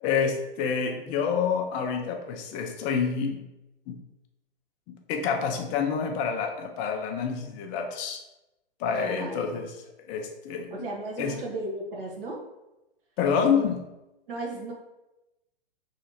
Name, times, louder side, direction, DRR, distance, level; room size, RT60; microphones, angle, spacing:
voice 1, 0.0-3.4 3.9-4.0 4.9-8.2 8.8-9.7 10.0-10.9 11.2-11.4 13.2-13.8, left 6 dB, 25° left, 4 dB, 0.5 m, -28 dB
voice 2, 8.9-9.5 10.7-12.4 13.4-13.6 14.3-14.7, right 2 dB, 65° right, -1 dB, 1.2 m, -35 dB
3.2 x 2.7 x 4.3 m, 0.96 s
hypercardioid pair, 120°, 30 cm